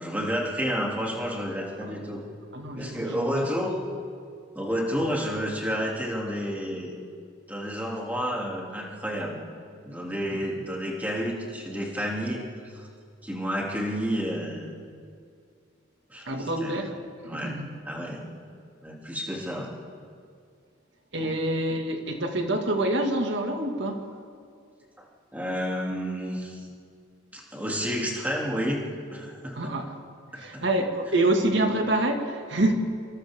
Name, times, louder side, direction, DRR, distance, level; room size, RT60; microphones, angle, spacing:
voice 1, 0.0-2.2 2.8-3.7 4.5-6.9 7.5-9.4 9.8-12.9 13.2-14.7 16.1-16.9 17.3-17.5 17.8-18.3 18.8-19.7 21.2-21.4 25.3-26.7 27.3-28.8 29.1-29.7 30.3-30.6, equal, 10° right, -3 dB, 2.9 m, -30 dB
voice 2, 2.5-3.5 16.3-16.9 17.2-17.7 21.1-24.1 29.6-29.9 30.3-32.7, right 1 dB, 65° right, 3 dB, 2.2 m, -27 dB
26.5 x 26.0 x 3.8 m, 2.3 s
head